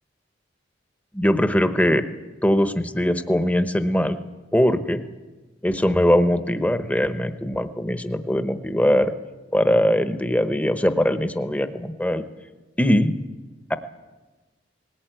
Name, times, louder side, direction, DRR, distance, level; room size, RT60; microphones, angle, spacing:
voice 1, 1.1-2.0 2.4-4.2 4.5-5.0 5.6-9.1 9.5-12.2 12.8-13.1 13.7-13.8, equal, 10° left, 9 dB, 1.0 m, -21 dB
19.5 x 19.0 x 9.2 m, 1.2 s
head